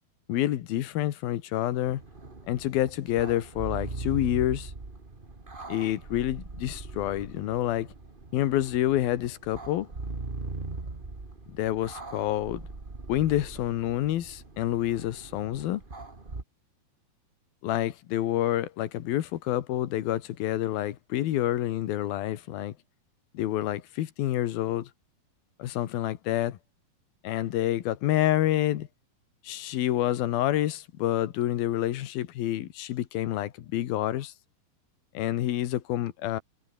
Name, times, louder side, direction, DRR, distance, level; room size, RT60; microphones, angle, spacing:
voice 1, 0.3-2.0 2.5-4.7 5.7-7.9 8.3-9.9 11.5-12.6 13.1-15.8 17.6-22.7 23.3-24.9 25.6-26.6 27.2-28.9 29.4-34.3 35.1-36.4, left 13 dB, 75° left, 3.1 m, -28 dB
sound 1, 1.8-16.4, right 3 dB, 20° right, 1.7 m, -40 dB
omnidirectional pair, 4.4 m